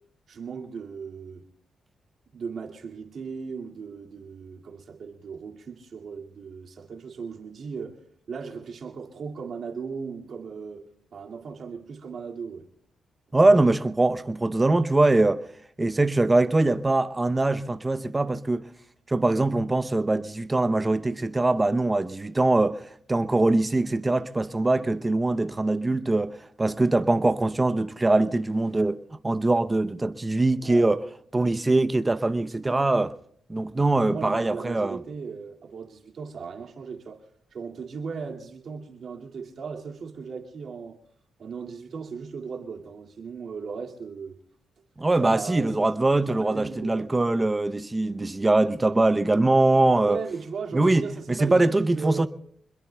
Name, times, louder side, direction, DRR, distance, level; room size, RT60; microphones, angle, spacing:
voice 1, 0.3-1.4 2.3-8.0 8.3-12.7 30.6-30.9 34.0-37.2 37.5-41.0 41.4-44.4 45.2-45.9 46.3-47.1 50.0-52.3, right 5 dB, 65° right, 2.3 m, -37 dB
voice 2, 13.3-15.4 15.8-18.7 19.1-22.8 23.1-31.0 31.3-33.1 33.5-35.0 45.0-50.2 50.7-52.3, right 2 dB, 20° right, 0.7 m, -22 dB
26.0 x 21.5 x 2.3 m
cardioid pair, 90°, 0 cm